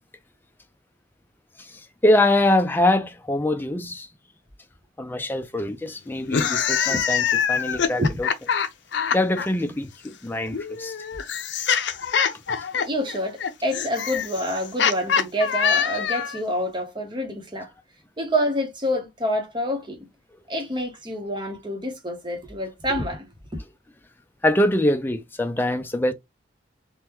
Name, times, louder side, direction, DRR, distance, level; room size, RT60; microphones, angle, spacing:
voice 1, 1.6-4.1 5.0-8.3 9.1-10.9 24.4-26.1, left 1 dB, 10° left, 0.4 m, -23 dB
sound 1, 6.2-9.5 10.5-16.4, left 7 dB, 80° left, 0.5 m, -24 dB
voice 2, 12.8-17.7 18.2-20.1 20.5-23.3, equal, 25° right, 0.8 m, -27 dB
3.5 x 2.2 x 2.9 m
head